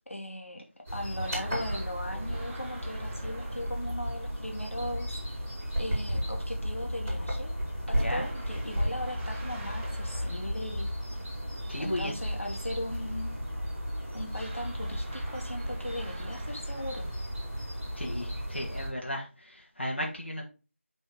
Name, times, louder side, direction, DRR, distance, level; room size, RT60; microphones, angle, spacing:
voice 1, 0.1-0.6 0.9-5.2 5.8-7.6 7.9-10.8 11.8-13.4 14.1-17.1, left 1 dB, 70° left, 1.9 m, -38 dB
sound 1, 0.8-18.9, equal, 10° right, 2.8 m, -34 dB
sound 2, 1.1-4.1 7.9-10.8 14.3-17.4, right 2 dB, 10° left, 1.1 m, -48 dB
voice 2, 7.9-8.3 11.7-12.1 18.0-20.4, left 1 dB, 55° left, 1.9 m, -35 dB
6.1 x 4.7 x 3.9 m
figure-of-eight pair, 175°, 7 cm